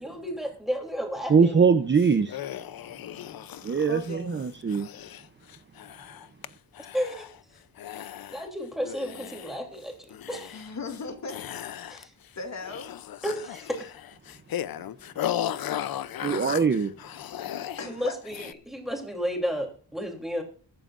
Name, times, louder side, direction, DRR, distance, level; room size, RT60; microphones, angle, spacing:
voice 1, 0.0-1.7 6.9-7.2 8.3-10.6 11.9-12.1 13.2-13.9 17.9-20.4, equal, ahead, 3.1 m, -32 dB
voice 2, 1.3-2.4 3.6-4.9 16.2-16.9, right 5 dB, 30° right, 0.7 m, -22 dB
sound 1, 2.0-6.5 6.7-7.4 7.8-8.5 8.8-9.8 10.1-11.0 11.3-12.3 12.6-17.9 18.2-18.5, left 11 dB, 60° left, 0.7 m, -36 dB
voice 3, 3.9-4.4 10.5-11.7 12.4-12.9 17.8-18.2, left 4 dB, 45° left, 2.4 m, -37 dB
22.5 x 9.0 x 2.5 m
wide cardioid pair, 165°, 40 cm